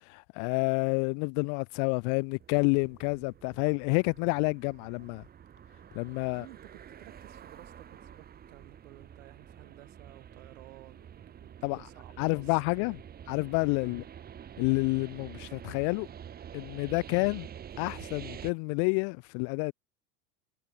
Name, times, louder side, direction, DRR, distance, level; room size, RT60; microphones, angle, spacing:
voice 1, 0.1-5.2 5.9-6.4 11.6-11.8 12.2-13.0 13.3-14.0 14.6-16.1 16.5-17.5 17.8-19.7, left 40 dB or more, 55° left, 0.4 m, -29 dB
sound 1, 2.4-18.5, right 9 dB, 25° right, 0.9 m, -48 dB
voice 2, 6.3-13.0 13.8-14.0 17.0-17.2, right 18 dB, 80° right, 2.6 m, -54 dB
supercardioid pair, 100°, 38 cm